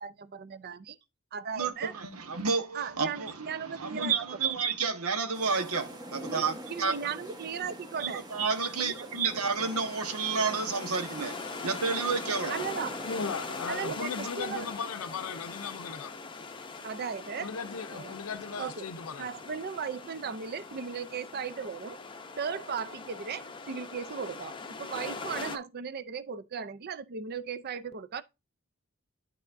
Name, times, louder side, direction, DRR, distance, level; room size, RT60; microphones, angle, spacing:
voice 1, 0.0-1.0 1.3-1.9 2.7-4.1 6.3-8.2 8.8-8.9 12.5-13.0 13.7-14.7 16.8-17.5 17.9-18.1 18.6-18.9 19.2-22.0 22.4-28.2, right 6 dB, 45° right, 0.5 m, -37 dB
voice 2, 1.6-6.9 8.0-11.4 11.6-12.6, right 5 dB, 90° right, 1.2 m, -30 dB
sound 1, 5.3-13.6, right 1 dB, 20° right, 1.1 m, -45 dB
sound 2, 9.6-25.6, left 4 dB, 20° left, 0.7 m, -41 dB
voice 3, 13.0-16.1 17.4-19.3, left 5 dB, 80° left, 0.6 m, -37 dB
11.5 x 4.1 x 2.6 m
head